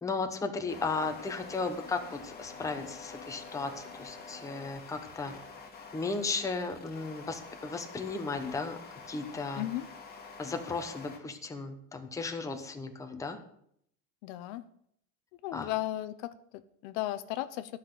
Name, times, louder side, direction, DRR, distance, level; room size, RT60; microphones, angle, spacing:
voice 1, 0.0-5.3 5.9-9.6 10.4-13.4 15.5-15.7, left 4 dB, 10° left, 5 dB, 0.9 m, -35 dB
sound 1, 0.7-11.2, left 4 dB, 25° left, 1.9 m, -47 dB
voice 2, 9.6-9.9 14.2-14.6 15.4-17.8, left 15 dB, 60° left, 12 dB, 0.8 m, -35 dB
11.0 x 5.9 x 8.2 m, 0.70 s
cardioid pair, 155°, 39 cm